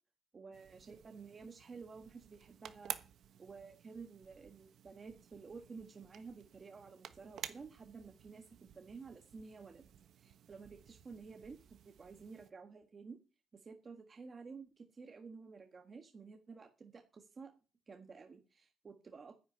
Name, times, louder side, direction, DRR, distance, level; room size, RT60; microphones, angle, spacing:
voice 1, 0.3-2.9 3.4-9.9 10.2-11.6 11.8-13.2 13.5-17.5 17.9-19.3, right 4 dB, 35° right, 5 dB, 1.5 m, -52 dB
sound 1, 0.5-12.5, right 9 dB, 80° right, 1.2 m, -52 dB
10.5 x 8.6 x 9.4 m, 0.34 s
wide cardioid pair, 150°, 0 cm